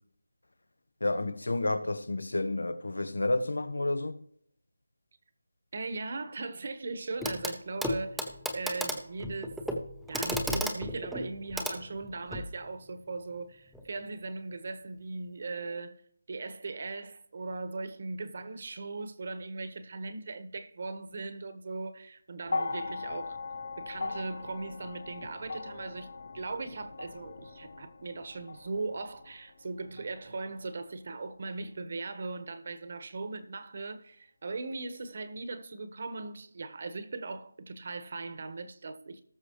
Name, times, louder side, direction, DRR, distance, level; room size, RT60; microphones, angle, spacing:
voice 1, 1.0-4.2, left 2 dB, 85° left, 1.2 m, -30 dB
voice 2, 5.7-8.3 8.5-9.6 10.1-16.0 16.3-23.4 23.8-26.1 26.3-39.2, right 3 dB, 45° right, 1.4 m, -39 dB
Clock, 7.2-7.5 7.8-12.5 13.7-13.8, equal, ahead, 0.8 m, -34 dB
sound 1, 22.4-30.8 31.9-32.0, left 3 dB, 50° left, 1.6 m, -40 dB
19.0 x 6.5 x 3.2 m
figure-of-eight pair, 170°, 0 cm